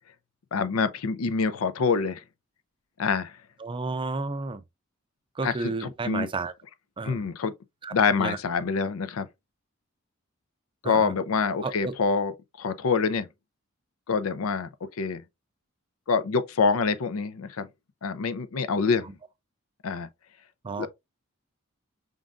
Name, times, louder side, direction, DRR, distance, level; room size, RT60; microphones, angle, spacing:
voice 1, 0.5-2.2 3.0-3.3 5.4-6.3 7.0-7.5 7.9-9.3 10.8-12.3 12.6-13.3 14.1-14.7 15.0-15.2 16.1-17.7 18.0-19.1 19.8-20.1 20.8-20.9, left 5 dB, 80° left, 0.5 m, -26 dB
voice 2, 3.6-4.6 5.4-6.5 7.0-7.3 7.8-8.4 10.8-11.1 11.6-11.9 20.6-20.9, right 3 dB, 25° right, 0.4 m, -32 dB
5.2 x 3.7 x 2.3 m
head